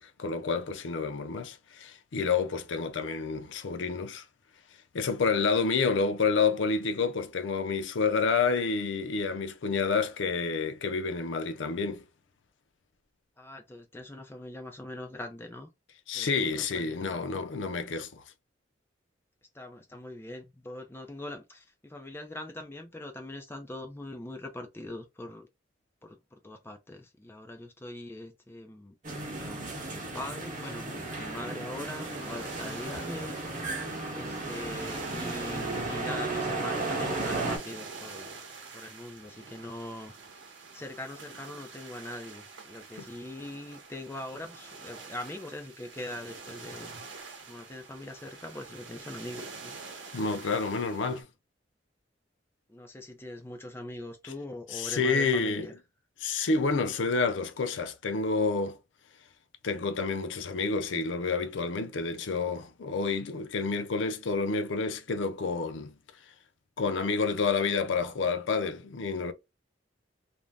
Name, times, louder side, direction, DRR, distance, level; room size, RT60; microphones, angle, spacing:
voice 1, 0.0-4.2 4.9-12.0 16.1-18.2 50.1-51.3 54.2-54.3 54.7-55.7 56.2-58.8 59.6-65.9 66.8-69.3, left 4 dB, 85° left, 0.5 m, -29 dB
voice 2, 13.4-15.7 16.1-17.0 19.5-25.5 26.0-28.9 29.4-33.8 34.1-38.4 38.7-47.0 47.5-49.8 52.7-55.7, left 1 dB, 15° left, 0.4 m, -42 dB
sound 1, 29.0-37.6, right 2 dB, 45° right, 0.9 m, -34 dB
sound 2, 31.8-51.2, right 4 dB, 85° right, 0.8 m, -46 dB
2.6 x 2.1 x 3.3 m
head